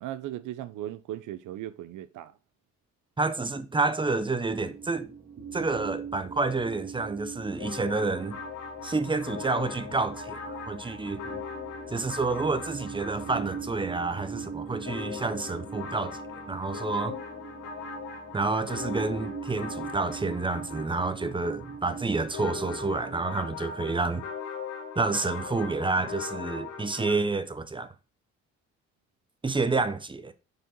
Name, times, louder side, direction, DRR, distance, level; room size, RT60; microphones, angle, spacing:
voice 1, 0.0-2.3, right 13 dB, 80° right, 0.6 m, -37 dB
voice 2, 3.2-5.1 5.5-8.4 8.8-11.4 11.9-16.2 16.5-17.2 18.3-24.3 25.0-27.9 29.4-30.3, right 3 dB, 15° right, 0.7 m, -29 dB
sound 1, 4.5-23.2, right 6 dB, 60° right, 2.3 m, -42 dB
sound 2, 7.6-27.1, left 6 dB, 90° left, 1.9 m, -40 dB
6.5 x 4.4 x 4.0 m
cardioid pair, 90°, 30 cm